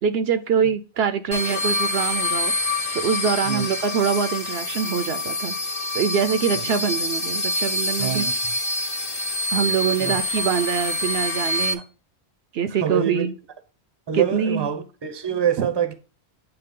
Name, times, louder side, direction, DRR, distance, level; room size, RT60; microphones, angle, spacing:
voice 1, 0.0-2.5 2.9-5.6 5.9-8.3 9.5-11.8 12.5-13.3 14.1-14.7 15.6-15.7, right 7 dB, 70° right, 0.8 m, -24 dB
sound 1, 1.3-11.7, left 2 dB, 40° left, 0.8 m, -26 dB
voice 2, 8.0-8.5 10.0-10.4 12.8-13.3 14.1-15.9, right 8 dB, 30° right, 0.7 m, -26 dB
8.8 x 3.1 x 3.7 m
omnidirectional pair, 1.1 m